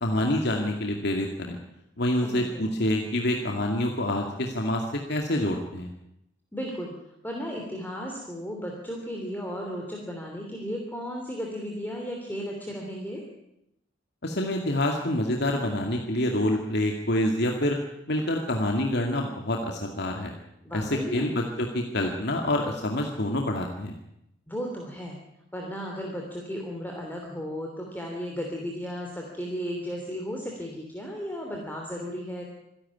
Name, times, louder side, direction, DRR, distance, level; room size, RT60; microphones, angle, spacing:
voice 1, 0.0-1.6 2.0-4.8 5.1-5.9 14.2-17.8 18.1-20.3 20.7-24.0, left 1 dB, 60° left, 2 dB, 2.3 m, -27 dB
voice 2, 2.2-2.7 6.5-6.9 7.2-13.2 20.6-21.3 24.5-25.2 25.5-32.4, equal, 10° left, 0 dB, 3.1 m, -35 dB
25.5 x 11.5 x 9.6 m, 0.82 s
head